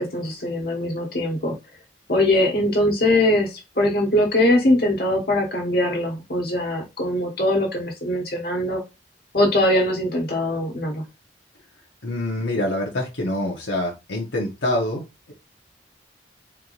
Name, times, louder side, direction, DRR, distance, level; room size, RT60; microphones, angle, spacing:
voice 1, 0.0-1.5 2.1-8.8 9.3-11.0, left 1 dB, 55° left, 0 dB, 1.6 m, -21 dB
voice 2, 12.0-15.3, left 1 dB, 85° left, -1 dB, 1.3 m, -26 dB
4.5 x 3.5 x 2.6 m, 0.25 s
head